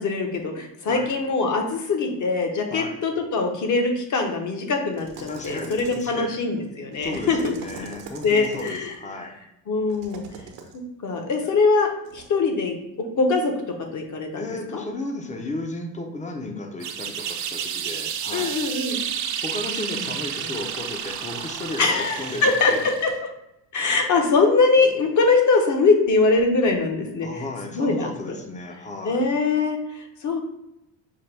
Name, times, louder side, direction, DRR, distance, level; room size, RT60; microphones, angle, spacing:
voice 1, 0.0-7.5 8.2-8.9 9.7-10.2 10.7-12.7 13.2-13.5 13.9-14.5 14.7-14.8 18.3-19.0 21.8-23.1 23.7-27.4 27.7-28.4 29.0-30.4, left 3 dB, 45° left, 3 dB, 1.0 m, -22 dB
sound 1, 4.9-6.3 6.9-9.0 9.9-10.8 12.0-12.3, right 5 dB, 75° right, 0.9 m, -42 dB
voice 2, 5.3-6.4 7.0-9.4 14.4-18.6 19.4-22.8 27.2-29.3, left 2 dB, 15° left, 4 dB, 0.6 m, -34 dB
sound 2, 16.8-23.2, right 8 dB, 45° right, 0.6 m, -31 dB
5.6 x 2.2 x 3.3 m, 0.85 s
supercardioid pair, 95°, 43 cm